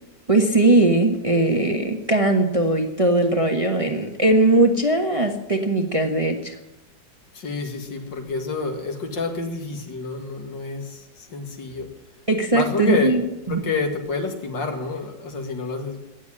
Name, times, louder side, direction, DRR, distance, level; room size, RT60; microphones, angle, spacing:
voice 1, 0.3-6.6 12.3-13.2 13.5-13.6, right 2 dB, 20° right, 1.2 m, -19 dB
voice 2, 7.3-11.9 12.5-13.2 13.5-16.0, left 4 dB, 70° left, 2.7 m, -29 dB
17.5 x 7.4 x 9.8 m
omnidirectional pair, 2.0 m